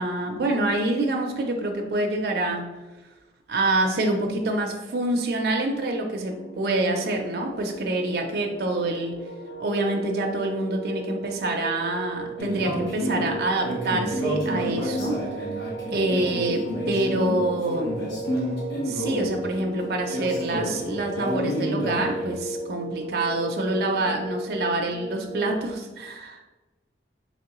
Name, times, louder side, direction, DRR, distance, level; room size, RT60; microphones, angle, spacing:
voice 1, 0.0-2.6 3.5-9.1 9.6-15.2 15.9-17.9 18.8-26.4, right 2 dB, 55° right, 2 dB, 0.4 m, -26 dB
sound 1, 6.3-25.8, right 2 dB, 15° left, 0.7 m, -36 dB
sound 2, 12.4-22.3, equal, 70° left, 1.1 m, -30 dB
3.5 x 3.0 x 2.9 m, 1.1 s
head